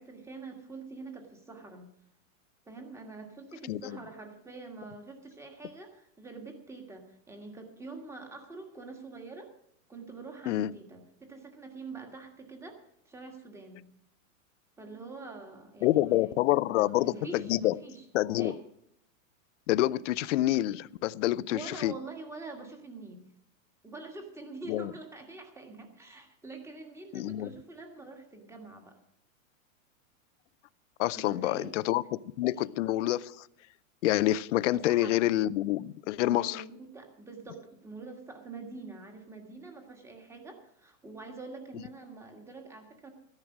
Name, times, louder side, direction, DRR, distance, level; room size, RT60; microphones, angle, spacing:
voice 1, 0.0-1.9 2.7-9.5 9.9-12.8 13.1-13.8 14.8-16.4 16.7-18.0 18.4-18.6 21.5-23.3 23.8-29.0 31.1-31.7 34.7-35.2 36.2-43.1, right 3 dB, 5° right, 1.7 m, -45 dB
voice 2, 15.8-17.7 18.1-18.5 19.7-21.9 24.7-24.9 27.1-27.5 31.0-33.5 34.0-36.6, left 15 dB, 60° left, 0.6 m, -27 dB
13.5 x 10.5 x 6.1 m
supercardioid pair, 155°, 40 cm